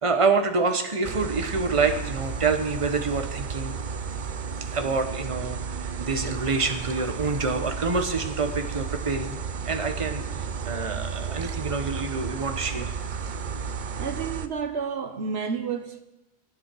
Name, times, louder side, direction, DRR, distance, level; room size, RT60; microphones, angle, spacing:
voice 1, 0.0-3.7 4.7-5.6 6.0-9.4 9.6-12.9, right 4 dB, 30° right, 1.2 m, -27 dB
sound 1, 1.0-14.5, right 6 dB, 50° right, 0.8 m, -33 dB
voice 2, 14.0-16.0, right 6 dB, 70° right, 1.2 m, -30 dB
24.0 x 9.7 x 4.7 m
omnidirectional pair, 1.1 m